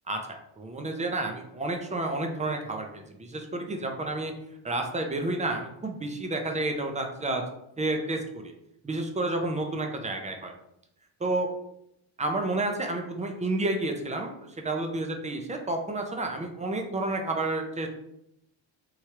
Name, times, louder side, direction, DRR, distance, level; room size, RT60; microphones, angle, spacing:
voice 1, 0.6-4.3 4.6-7.4 7.8-8.5 8.8-10.5 11.2-11.5 12.2-17.9, right 2 dB, 15° right, 3 dB, 0.3 m, -30 dB
3.2 x 2.3 x 2.8 m, 0.80 s
cardioid pair, 90°, 49 cm